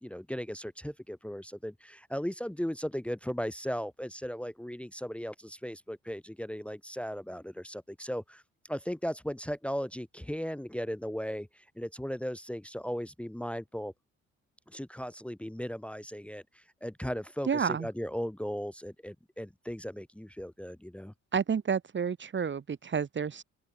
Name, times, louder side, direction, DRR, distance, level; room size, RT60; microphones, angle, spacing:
voice 1, 0.0-8.4 8.7-13.9 14.7-21.1, equal, 5° left, 1.3 m, -37 dB
voice 2, 17.5-17.9 21.3-23.4, right 6 dB, 40° right, 1.6 m, -30 dB
open air
cardioid pair, 90°, 30 cm